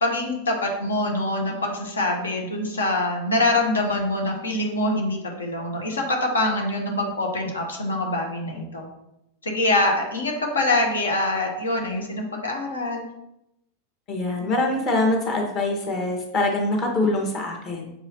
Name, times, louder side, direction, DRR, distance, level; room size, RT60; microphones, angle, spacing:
voice 1, 0.0-8.9 9.4-13.1, left 2 dB, 70° left, 1 dB, 1.1 m, -24 dB
voice 2, 14.1-17.9, left 2 dB, 30° left, 1 dB, 1.5 m, -24 dB
6.7 x 4.7 x 3.0 m, 0.84 s
figure-of-eight pair, 90°, 0 cm